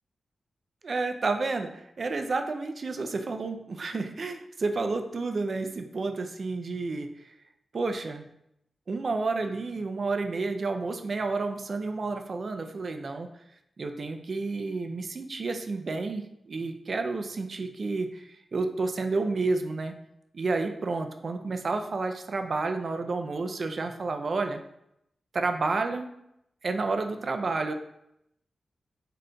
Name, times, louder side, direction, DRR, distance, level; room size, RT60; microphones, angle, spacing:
voice 1, 0.8-7.4 7.7-8.2 8.9-13.3 13.8-19.9 20.3-24.6 25.3-26.1 26.6-27.7, right 3 dB, 50° right, 6 dB, 0.3 m, -30 dB
3.7 x 3.6 x 2.2 m, 0.80 s
wide cardioid pair, 130°, 0 cm